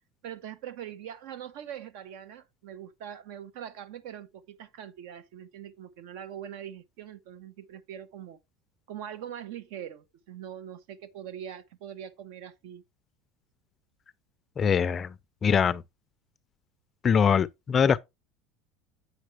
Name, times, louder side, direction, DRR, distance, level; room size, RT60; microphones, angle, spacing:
voice 1, 0.2-8.4 8.9-12.8, right 10 dB, 70° right, 0.9 m, -42 dB
voice 2, 14.6-15.1 15.4-15.8 17.0-18.0, left 7 dB, 25° left, 0.4 m, -23 dB
8.1 x 6.1 x 3.3 m
supercardioid pair, 130°, 0 cm